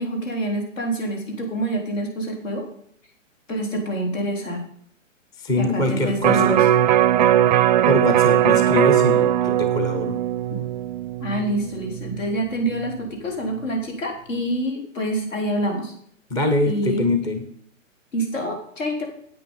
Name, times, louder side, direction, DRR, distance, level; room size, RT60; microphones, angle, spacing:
voice 1, 0.0-2.7 3.5-4.6 5.6-6.7 11.2-15.9 16.6-17.0 18.1-19.0, right 1 dB, 70° left, 2 dB, 4.4 m, -26 dB
voice 2, 5.4-6.6 7.9-10.2 16.3-17.4, left 1 dB, 10° left, 7 dB, 0.6 m, -23 dB
Electric guitar, 6.2-12.4 12.8-12.9, right 11 dB, 35° right, 0.5 m, -19 dB
9.0 x 8.7 x 5.6 m, 0.64 s
hypercardioid pair, 135°, 39 cm